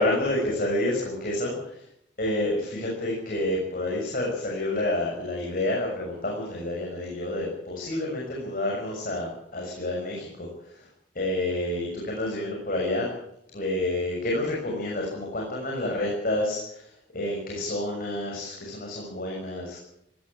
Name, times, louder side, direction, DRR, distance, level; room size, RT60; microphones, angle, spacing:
voice 1, 0.0-1.8 2.2-10.9 11.1-13.1 13.5-19.9, left 1 dB, 50° left, -2 dB, 6.6 m, -29 dB
18.5 x 18.0 x 8.9 m, 0.78 s
head